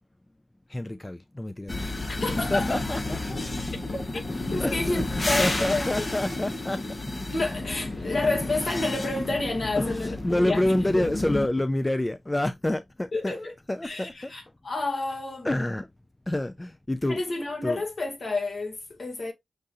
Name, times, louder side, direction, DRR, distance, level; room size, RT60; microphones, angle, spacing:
voice 1, 0.7-2.1 2.5-3.4 4.6-5.0 5.4-7.0 9.8-14.3 15.4-15.9 16.3-17.2 17.6-17.8, left 1 dB, 20° left, 0.4 m, -28 dB
sound 1, 1.7-11.5, left 2 dB, 40° left, 0.8 m, -31 dB
voice 2, 2.1-2.8 3.9-4.2 4.5-6.0 7.3-10.6 13.1-13.5 13.8-15.5 17.1-19.3, left 2 dB, 65° left, 1.9 m, -30 dB
6.5 x 2.4 x 2.7 m
cardioid pair, 50°, 0 cm